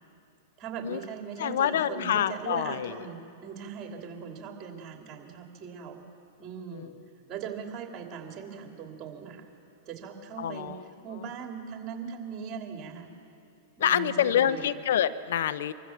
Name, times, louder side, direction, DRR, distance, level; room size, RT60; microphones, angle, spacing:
voice 1, 0.6-6.0 6.4-6.9 7.3-9.5 9.9-10.8 11.0-13.1 13.8-14.7, right 7 dB, 35° right, 2 dB, 3.1 m, -40 dB
voice 2, 1.4-2.9 6.7-6.9 10.4-10.8 13.8-15.7, left 10 dB, 70° left, 14 dB, 0.6 m, -26 dB
25.5 x 14.5 x 7.4 m, 2.6 s
hypercardioid pair, 110°, 0 cm